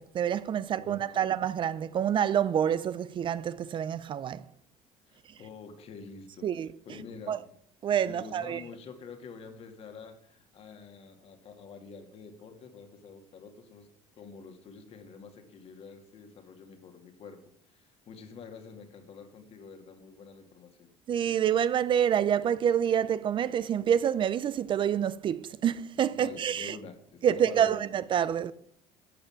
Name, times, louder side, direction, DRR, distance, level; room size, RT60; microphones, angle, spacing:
voice 1, 0.0-4.4 6.4-6.7 7.3-7.4 7.8-8.6 21.1-26.8 27.2-28.5, right 9 dB, 40° right, 0.5 m, -27 dB
voice 2, 0.8-1.2 5.1-6.5 6.9-7.5 8.0-13.9 14.1-17.4 17.7-20.9 26.1-27.8, left 5 dB, 50° left, 2.2 m, -47 dB
12.0 x 5.8 x 8.7 m
cardioid pair, 110°, 13 cm